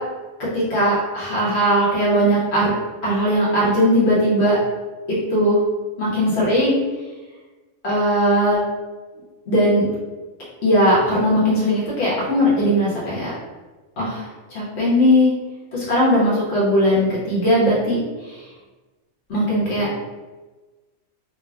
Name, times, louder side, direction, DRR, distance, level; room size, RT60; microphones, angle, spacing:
voice 1, 0.5-2.7 3.0-4.6 5.3-5.6 6.0-6.8 7.8-8.6 9.5-9.9 10.6-13.3 14.0-14.2 14.5-15.3 15.7-18.0 19.3-19.9, equal, 50° left, -8 dB, 1.2 m, -18 dB
3.2 x 2.2 x 2.4 m, 1.2 s
omnidirectional pair, 1.5 m